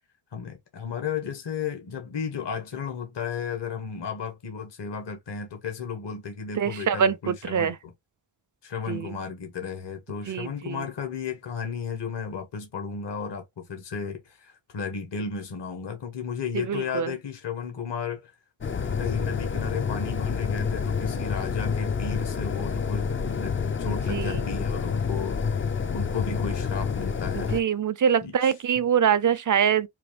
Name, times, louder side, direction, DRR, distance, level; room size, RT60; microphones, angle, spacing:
voice 1, 0.3-7.9 8.6-18.3 19.0-25.4 25.9-27.5 28.2-28.5, left 6 dB, 60° left, 1.1 m, -34 dB
voice 2, 6.6-7.8 8.9-9.1 10.3-10.8 16.5-17.1 23.9-24.4 27.3-29.9, right 8 dB, 45° right, 0.4 m, -24 dB
sound 1, 18.6-27.6, left 6 dB, 30° left, 0.4 m, -28 dB
3.8 x 2.4 x 3.2 m
wide cardioid pair, 95°, 48 cm